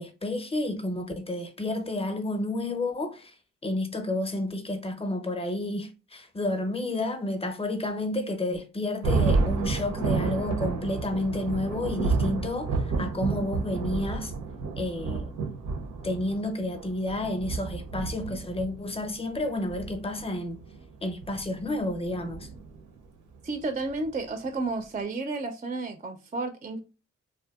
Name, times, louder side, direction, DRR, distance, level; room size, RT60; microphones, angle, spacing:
voice 1, 0.0-3.3 3.6-14.3 14.8-15.3 16.0-20.6 21.0-22.5, left 1 dB, 20° left, 0.5 m, -30 dB
Thunder, 9.0-23.0, right 4 dB, 80° right, 0.6 m, -30 dB
voice 2, 23.4-26.8, right 3 dB, 25° right, 0.3 m, -32 dB
2.6 x 2.2 x 2.3 m
cardioid pair, 60°, 29 cm